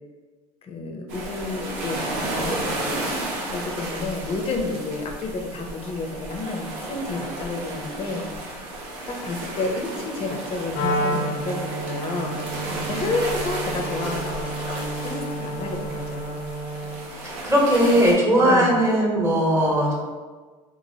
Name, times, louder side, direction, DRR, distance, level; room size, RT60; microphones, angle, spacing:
voice 1, 0.6-3.1 3.4-8.3 8.6-12.5 12.9-16.4 17.1-17.3 18.4-18.8, left 3 dB, 35° left, 3 dB, 0.5 m, -30 dB
sound 1, 1.1-18.1, right 2 dB, 65° right, 0.7 m, -33 dB
Wind instrument woodwind instrument, 10.7-17.1, right 1 dB, 80° left, 0.5 m, -30 dB
voice 2, 17.1-19.9, equal, 15° right, -3 dB, 1.0 m, -19 dB
2.9 x 2.5 x 2.7 m, 1.4 s
supercardioid pair, 95°, 18 cm